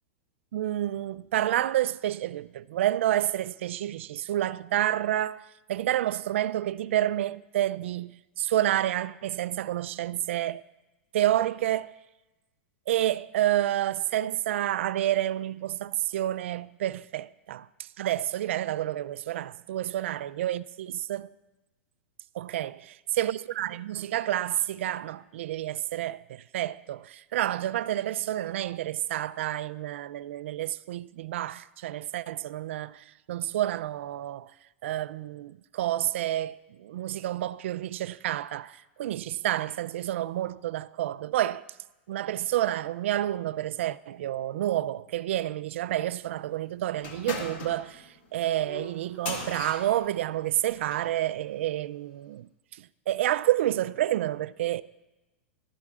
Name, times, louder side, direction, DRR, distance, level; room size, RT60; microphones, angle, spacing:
voice 1, 0.5-10.6 11.1-11.9 12.9-21.3 22.3-22.9 23.2-34.5 34.8-41.6 42.1-54.8, right 13 dB, 70° right, 0.4 m, -29 dB
sound 1, 47.0-51.1, left 3 dB, 50° left, 1.9 m, -39 dB
17.5 x 12.5 x 2.4 m
supercardioid pair, 160°, 7 cm